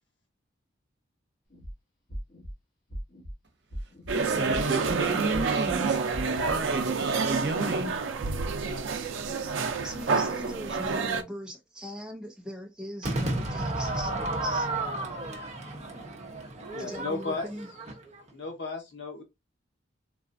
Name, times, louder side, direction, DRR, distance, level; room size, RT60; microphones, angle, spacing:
sound 1, 1.5-1.7 2.1-2.5 2.9-3.3 3.7-4.1 4.5-4.9 5.3-5.7 6.1-6.6, equal, 45° left, 1.6 m, -38 dB
voice 1, 4.1-6.0 6.4-7.9, right 3 dB, 60° right, 1.0 m, -31 dB
sound 2, 4.1-11.2, right 4 dB, 90° right, 0.5 m, -28 dB
voice 2, 9.8-14.7 16.8-17.7, equal, 5° right, 0.7 m, -40 dB
Crowd / Fireworks, 13.0-18.3, right 2 dB, 35° right, 0.8 m, -32 dB
voice 3, 16.7-17.5 18.3-19.2, left 3 dB, 70° left, 1.0 m, -34 dB
3.8 x 2.4 x 2.5 m
head